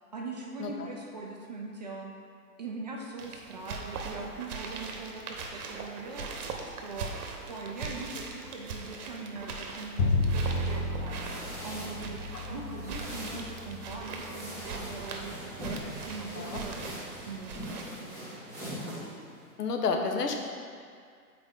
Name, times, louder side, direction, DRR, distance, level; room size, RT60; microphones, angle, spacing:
voice 1, 0.1-2.1 2.6-6.3 6.6-7.1 7.5-11.3 11.6-12.2 12.5-18.3, right 3 dB, 30° right, -1 dB, 0.4 m, -41 dB
sound 1, 3.2-17.8, right 4 dB, 70° right, 1.0 m, -41 dB
Bowed string instrument, 10.0-16.1, left 2 dB, 30° left, 0.7 m, -33 dB
sound 2, 11.2-19.5, equal, 5° left, 1.3 m, -42 dB
voice 2, 19.6-20.4, left 4 dB, 85° left, 3 dB, 1.0 m, -30 dB
6.7 x 4.5 x 3.7 m, 2.2 s
hypercardioid pair, 150°, 46 cm